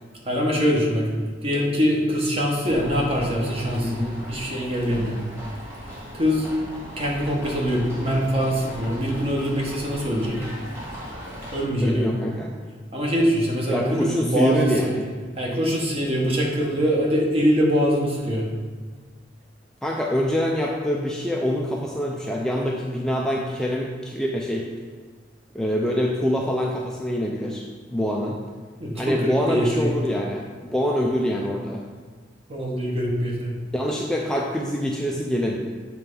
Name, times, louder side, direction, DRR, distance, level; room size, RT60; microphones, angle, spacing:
voice 1, 0.2-1.1 1.4-4.0 4.3-5.1 6.1-6.5 7.0-10.4 11.5-12.1 12.9-14.7 15.4-18.4 28.8-29.9 32.5-33.5, equal, 30° right, -2 dB, 1.2 m, -23 dB
sound 1, 2.6-11.6, equal, 15° right, 1.9 m, -38 dB
voice 2, 3.8-4.2 11.8-12.5 13.7-15.1 19.8-24.7 25.5-27.6 27.9-28.4 28.9-31.8 33.7-35.6, equal, 5° left, -2 dB, 0.4 m, -25 dB
7.2 x 3.3 x 5.4 m, 1.5 s
head